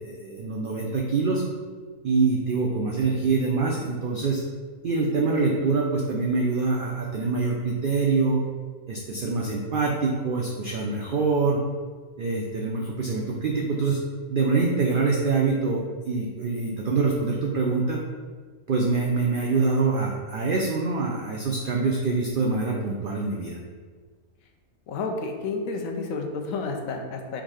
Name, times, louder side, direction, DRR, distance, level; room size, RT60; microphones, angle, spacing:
voice 1, 0.0-1.4 2.0-4.4 4.8-8.4 8.9-11.6 12.2-14.0 14.3-18.0 18.7-23.6, right 4 dB, 80° right, -1 dB, 0.4 m, -25 dB
voice 2, 24.9-27.4, left 3 dB, 80° left, 2 dB, 1.0 m, -30 dB
3.7 x 2.6 x 4.7 m, 1.5 s
omnidirectional pair, 1.5 m